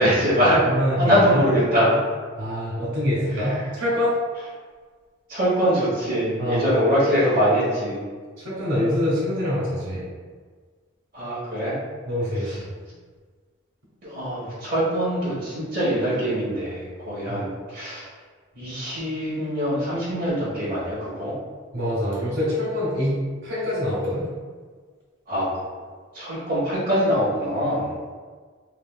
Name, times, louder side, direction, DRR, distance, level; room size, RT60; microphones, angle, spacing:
voice 1, 0.0-0.7 1.0-2.0 3.4-3.6 5.3-8.0 11.1-11.8 12.5-12.6 14.0-18.1 18.5-21.3 25.3-25.5 26.1-28.0, equal, 45° right, -12 dB, 1.2 m, -23 dB
voice 2, 0.6-1.4 2.3-4.2 6.4-6.6 8.4-10.0 12.1-12.7 17.3-17.5 21.7-24.3, left 1 dB, 70° right, -6 dB, 1.5 m, -25 dB
3.2 x 3.2 x 2.3 m, 1.5 s
head